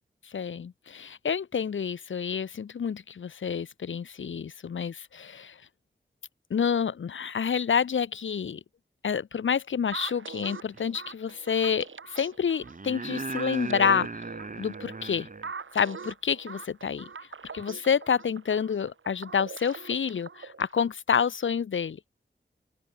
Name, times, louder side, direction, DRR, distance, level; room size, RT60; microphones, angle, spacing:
voice 1, 0.3-5.6 6.5-8.6 9.0-14.1 14.6-15.3 15.7-17.1 17.5-22.0, left 7 dB, 80° left, 0.7 m, -28 dB
sound 1, 9.9-20.9, right 5 dB, 85° right, 3.3 m, -42 dB
sound 2, 10.7-10.8 12.6-15.5 17.6-17.7, right 3 dB, 40° right, 2.3 m, -37 dB
open air
wide cardioid pair, 80°, 20 cm